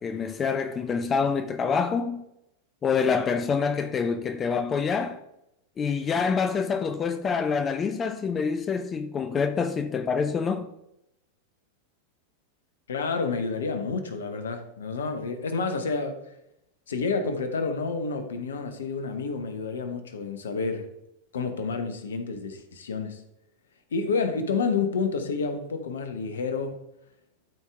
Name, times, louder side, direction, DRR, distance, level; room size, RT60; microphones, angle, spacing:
voice 1, 0.0-2.2 2.8-5.2 5.8-10.7, left 5 dB, 25° left, 0.5 m, -26 dB
voice 2, 12.9-16.2 16.9-20.9 21.3-23.2 23.9-26.8, left 4 dB, 65° left, 1.0 m, -29 dB
12.0 x 4.6 x 3.5 m
figure-of-eight pair, 90°, 0 cm